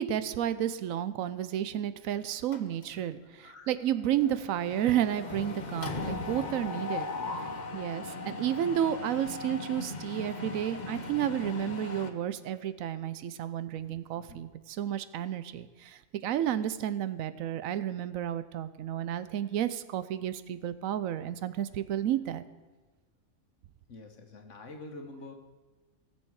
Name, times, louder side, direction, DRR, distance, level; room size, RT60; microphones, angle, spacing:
voice 1, 0.0-7.1 7.7-22.4, right 11 dB, 80° right, 13 dB, 1.0 m, -31 dB
Mechanisms, 2.5-3.1 3.4-3.7 3.9-12.1, left 3 dB, 40° left, 0.8 m, -38 dB
voice 2, 23.9-25.3, left 2 dB, 60° left, 4 dB, 1.5 m, -46 dB
17.5 x 7.2 x 4.7 m, 1.3 s
omnidirectional pair, 1.4 m